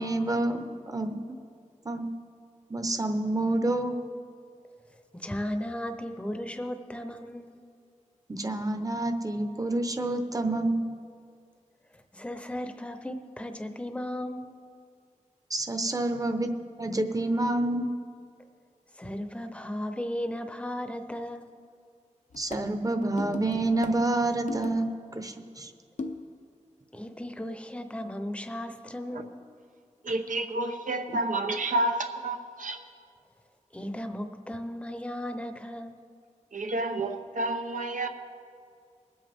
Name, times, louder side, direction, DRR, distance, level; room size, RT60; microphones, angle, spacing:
voice 1, 0.0-1.4 1.8-2.1 2.7-4.0 8.3-11.0 15.5-17.9 22.4-25.7, right 2 dB, 25° right, 6 dB, 0.8 m, -28 dB
voice 2, 5.1-7.6 12.1-14.5 18.9-21.5 26.9-29.3 33.7-36.0, left 1 dB, 10° left, 7 dB, 0.7 m, -35 dB
sound 1, 22.3-25.0 26.0-26.5, left 3 dB, 70° left, 0.6 m, -39 dB
voice 3, 30.0-32.8 36.5-38.1, right 2 dB, 90° right, 5 dB, 0.9 m, -30 dB
21.5 x 7.9 x 3.5 m, 2.3 s
wide cardioid pair, 80°, 13 cm